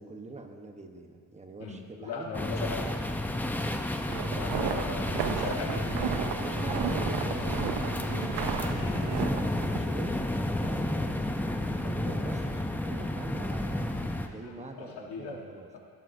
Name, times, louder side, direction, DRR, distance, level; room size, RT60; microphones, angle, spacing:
voice 1, 0.0-3.0 6.4-11.2 11.6-13.8 14.3-15.7, right 2 dB, 15° right, 4 dB, 1.0 m, -43 dB
voice 2, 1.6-2.9 4.3-5.9 12.0-12.1 14.4-15.4, left 4 dB, 85° left, -1 dB, 1.5 m, -38 dB
sound 1, 2.3-14.3, left 1 dB, 5° left, 0.5 m, -31 dB
sound 2, 3.2-9.0, left 2 dB, 50° left, 2.9 m, -48 dB
sound 3, 4.1-9.8, right 8 dB, 80° right, 0.7 m, -34 dB
17.0 x 13.0 x 2.7 m, 2.1 s
cardioid pair, 130°, 40 cm